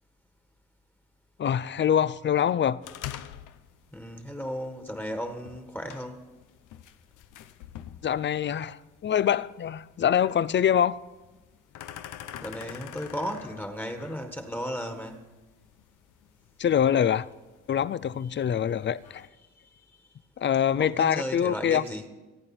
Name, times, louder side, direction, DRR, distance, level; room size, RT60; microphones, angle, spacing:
voice 1, 1.4-2.8 8.0-11.0 16.6-17.3 17.7-19.3 20.4-21.8, left 9 dB, 40° left, 0.5 m, -24 dB
sound 1, 2.8-19.3, left 11 dB, 85° left, 0.8 m, -47 dB
voice 2, 3.9-6.2 12.4-15.2 18.3-18.4 19.7-19.8 20.4-22.1, equal, 5° left, 1.6 m, -35 dB
26.0 x 8.9 x 4.3 m
cardioid pair, 90°, 30 cm